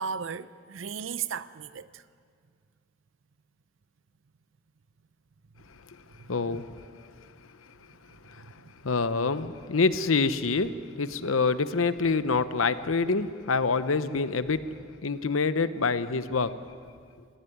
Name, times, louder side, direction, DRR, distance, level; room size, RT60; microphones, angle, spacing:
voice 1, 0.0-2.0 6.5-6.6, right 6 dB, 70° right, 0.6 m, -35 dB
voice 2, 6.3-6.6 8.3-8.4 8.8-14.6 15.0-16.5, left 4 dB, 90° left, 0.8 m, -26 dB
18.5 x 15.5 x 10.0 m
head